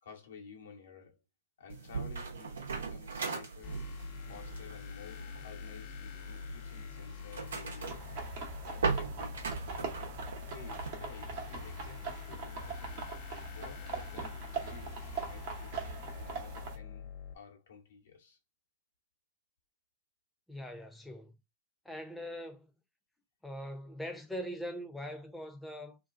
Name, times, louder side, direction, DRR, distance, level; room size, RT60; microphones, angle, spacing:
voice 1, 0.0-1.2 1.6-3.8 4.3-8.3 8.7-9.6 10.5-13.1 13.5-18.4, left 6 dB, 75° left, 1.1 m, -53 dB
sound 1, 1.7-10.9, right 5 dB, 80° right, 0.9 m, -39 dB
sound 2, 3.6-17.3, left 8 dB, 50° left, 0.6 m, -46 dB
sound 3, 7.8-16.8, right 5 dB, 55° right, 1.0 m, -42 dB
voice 2, 20.5-21.4 21.8-22.7 23.4-26.0, equal, 5° left, 0.8 m, -42 dB
2.8 x 2.3 x 3.6 m
hypercardioid pair, 100°, 0 cm